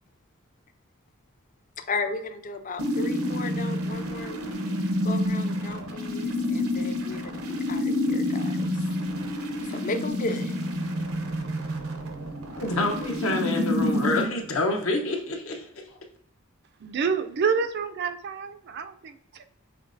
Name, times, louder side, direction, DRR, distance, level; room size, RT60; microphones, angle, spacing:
voice 1, 1.9-4.4 5.0-8.7 9.7-10.6, left 3 dB, 40° left, 8 dB, 0.4 m, -35 dB
sound 1, 2.8-14.2, left 1 dB, 85° right, 0.8 m, -28 dB
voice 2, 12.6-16.0, left 2 dB, 70° left, 2 dB, 0.9 m, -27 dB
voice 3, 16.8-19.5, right 5 dB, 50° right, 9 dB, 0.4 m, -28 dB
5.9 x 3.2 x 2.6 m, 0.68 s
head